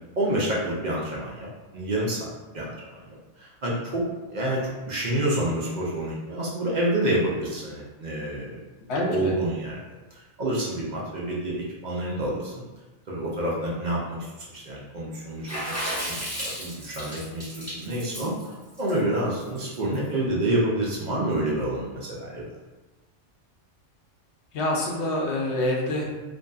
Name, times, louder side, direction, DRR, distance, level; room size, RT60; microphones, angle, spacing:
voice 1, 0.2-1.5 1.7-2.3 2.5-4.6 4.9-8.6 9.1-9.8 10.1-12.6 13.1-15.6 15.9-22.4, right 1 dB, 55° right, -5 dB, 0.5 m, -28 dB
voice 2, 8.9-9.3 24.5-26.0, left 1 dB, 70° left, -2 dB, 0.9 m, -26 dB
Water / Splash splatter, 15.5-19.9, equal, 15° right, 1.0 m, -33 dB
2.6 x 2.6 x 2.2 m, 1.2 s
omnidirectional pair, 1.3 m